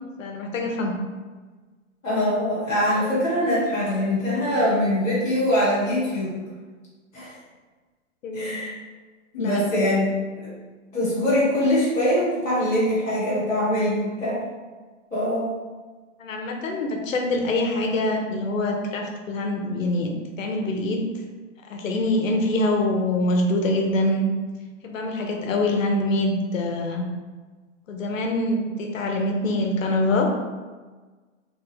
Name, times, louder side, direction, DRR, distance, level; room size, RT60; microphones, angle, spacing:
voice 1, 0.2-0.9 8.2-8.6 9.4-9.6 16.2-21.0 21.7-24.3 24.8-27.1 27.9-30.3, left 1 dB, 80° left, 2 dB, 0.9 m, -24 dB
voice 2, 2.0-6.3 7.1-7.3 8.3-8.8 9.3-10.5 10.9-14.4 15.1-15.5, left 1 dB, 5° right, -27 dB, 0.4 m, -23 dB
3.6 x 3.3 x 3.4 m, 1.3 s
hypercardioid pair, 170°, 38 cm